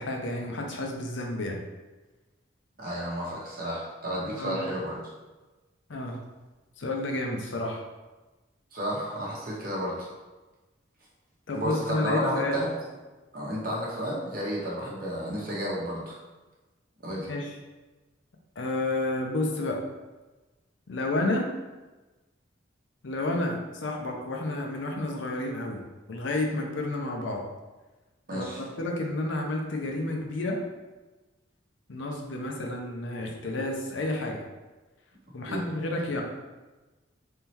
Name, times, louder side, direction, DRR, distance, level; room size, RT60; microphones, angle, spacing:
voice 1, 0.0-1.6 4.2-4.6 5.9-6.2 6.8-7.8 11.5-12.6 17.2-17.5 18.6-19.8 20.9-21.5 23.0-25.8 26.1-27.4 28.3-30.6 31.9-34.4 35.3-36.2, left 2 dB, 70° left, 1 dB, 0.6 m, -30 dB
voice 2, 2.8-5.0 8.7-10.1 11.5-12.7 13.3-16.2 17.0-17.3 28.3-28.6 35.5-35.6, equal, 45° right, -5 dB, 1.0 m, -31 dB
3.7 x 3.2 x 2.8 m, 1.2 s
head